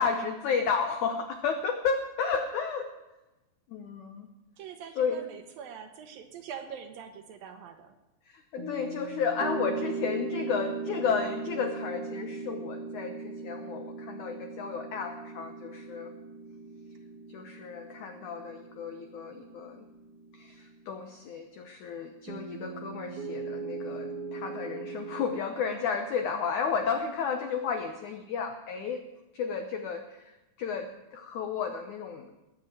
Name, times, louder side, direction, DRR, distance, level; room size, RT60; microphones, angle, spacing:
voice 1, 0.0-2.9 3.7-4.3 5.0-5.2 8.3-16.1 17.3-19.9 20.3-29.0 29.3-32.3, left 6 dB, 85° left, 6 dB, 1.7 m, -32 dB
voice 2, 4.6-8.0, right 7 dB, 70° right, 7 dB, 2.5 m, -44 dB
sound 1, 8.6-21.0 22.3-25.3, right 3 dB, 50° right, 3.2 m, -39 dB
20.5 x 7.5 x 8.9 m, 1.0 s
omnidirectional pair, 5.0 m